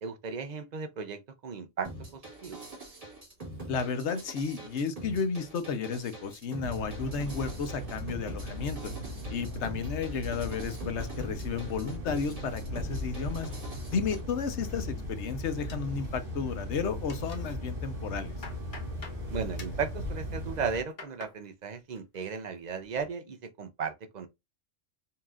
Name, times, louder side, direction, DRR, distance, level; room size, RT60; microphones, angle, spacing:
voice 1, 0.0-2.6 19.3-24.3, right 5 dB, 50° right, 0.5 m, -36 dB
sound 1, 1.8-14.2, right 2 dB, 30° right, 1.8 m, -45 dB
voice 2, 3.7-8.8 9.3-13.5 13.9-18.3, left 5 dB, 65° left, 1.0 m, -33 dB
sound 2, 6.6-20.8, left 1 dB, 70° right, 2.7 m, -38 dB
sound 3, 15.7-16.5 16.8-17.6 18.0-19.2 19.6-19.9 20.5-21.4 21.8-22.3 22.6-23.1, left 3 dB, 45° left, 1.0 m, -48 dB
5.5 x 2.9 x 2.3 m
omnidirectional pair, 1.3 m